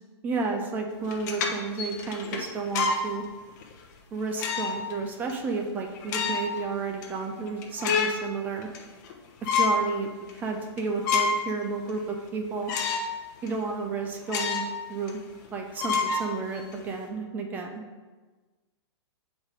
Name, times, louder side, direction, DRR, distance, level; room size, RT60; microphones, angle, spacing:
voice 1, 0.2-3.2 4.1-8.7 9.4-10.1 10.3-12.7 13.4-14.6 14.9-15.2 15.5-17.8, right 4 dB, 10° right, 3 dB, 0.4 m, -32 dB
sound 1, 1.0-3.1 3.6-3.7 4.4-4.9 5.3-5.4 5.9-6.6 7.0-7.1 7.5-8.2 8.6-9.1 9.4-9.8 10.3-10.4 10.8-11.5 11.9-12.0 12.7-13.1 13.5-13.6 14.3-14.8 15.1-15.2 15.8-16.8, left 4 dB, 40° left, 0.9 m, -27 dB
7.6 x 4.1 x 4.7 m, 1.3 s
hypercardioid pair, 160°, 15 cm